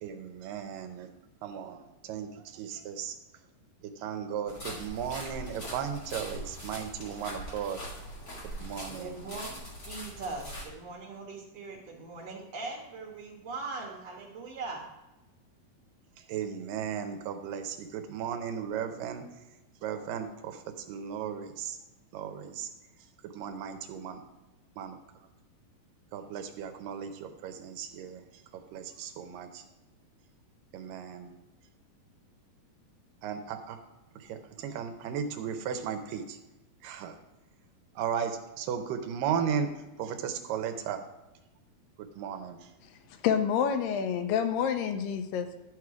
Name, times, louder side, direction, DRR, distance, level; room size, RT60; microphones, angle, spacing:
voice 1, 0.0-1.1 1.4-3.2 3.8-7.8 8.6-9.2 16.3-19.3 19.8-20.6 20.9-21.8 22.1-22.7 23.2-24.2 24.8-25.0 26.1-28.2 28.5-29.6 30.7-31.4 33.2-33.8 34.2-36.4 36.8-37.2 38.0-39.7 40.0-41.1 42.0-42.7, right 8 dB, 80° right, 2.3 m, -36 dB
sound 1, 4.5-10.7, equal, 30° left, 2.1 m, -42 dB
voice 2, 8.9-14.8, right 3 dB, 60° right, 2.1 m, -40 dB
voice 3, 43.2-45.6, left 7 dB, 85° left, 2.4 m, -28 dB
11.0 x 4.8 x 4.7 m
omnidirectional pair, 4.0 m